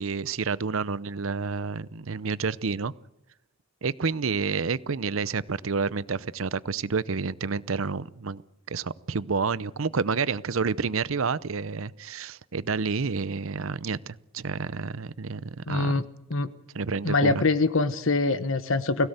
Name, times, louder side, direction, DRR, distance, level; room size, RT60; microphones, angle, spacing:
voice 1, 0.0-2.9 3.8-8.4 8.7-16.0 16.7-17.4, right 5 dB, 75° right, 19 dB, 0.7 m, -29 dB
voice 2, 15.7-16.0 16.3-16.5 17.0-19.1, left 3 dB, 75° left, 12 dB, 1.2 m, -24 dB
21.0 x 17.0 x 8.1 m, 0.89 s
head